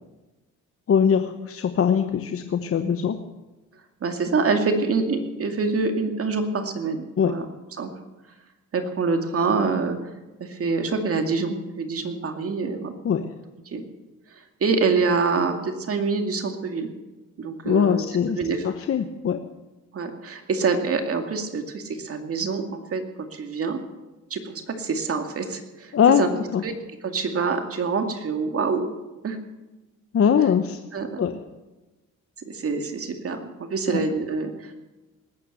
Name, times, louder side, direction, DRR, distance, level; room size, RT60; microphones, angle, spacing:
voice 1, 0.9-3.2 7.2-7.4 13.0-13.3 17.6-18.4 18.6-19.4 25.9-26.6 30.1-30.8 31.2-31.4 33.9-34.0, left 7 dB, 50° left, 8 dB, 1.0 m, -21 dB
voice 2, 4.0-7.0 7.2-7.5 7.8-7.9 8.7-10.0 10.4-12.9 13.7-13.8 14.6-16.9 17.4-18.0 18.3-18.7 19.9-23.0 23.3-23.8 24.3-26.3 26.6-26.7 27.0-29.0 29.2-29.4 30.9-31.2 32.4-34.8, right 4 dB, 50° right, 5 dB, 2.3 m, -26 dB
19.5 x 8.9 x 7.8 m, 1.1 s
cardioid pair, 90°, 30 cm